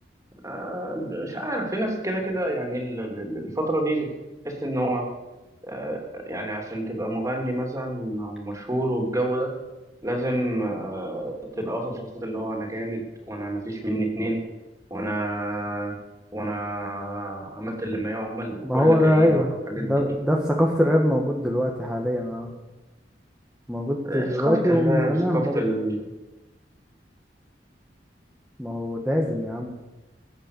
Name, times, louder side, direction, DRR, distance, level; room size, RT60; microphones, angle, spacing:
voice 1, 0.4-4.1 4.4-5.1 5.7-9.5 10.0-14.4 14.9-16.0 16.3-19.9 24.1-26.1, right 1 dB, 20° right, 1 dB, 3.1 m, -28 dB
voice 2, 18.6-22.5 23.7-25.6 28.6-29.7, equal, 5° right, -1 dB, 1.4 m, -22 dB
21.0 x 8.9 x 6.8 m, 1.1 s
head